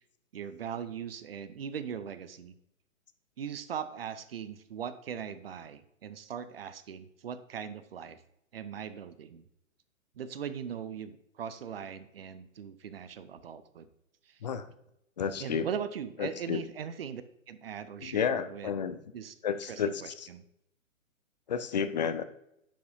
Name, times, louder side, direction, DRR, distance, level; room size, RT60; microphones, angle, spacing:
voice 1, 0.3-2.5 3.4-8.2 8.5-9.4 10.2-13.9 14.3-14.4 15.4-18.7 19.1-19.3 19.7-20.4, right 8 dB, 45° right, 13 dB, 0.7 m, -40 dB
voice 2, 15.2-15.7 16.2-16.6 18.0-19.0 19.4-20.3 21.5-22.2, left 7 dB, 35° left, 11 dB, 0.5 m, -31 dB
10.0 x 5.5 x 2.7 m, 0.80 s
figure-of-eight pair, 125°, 40 cm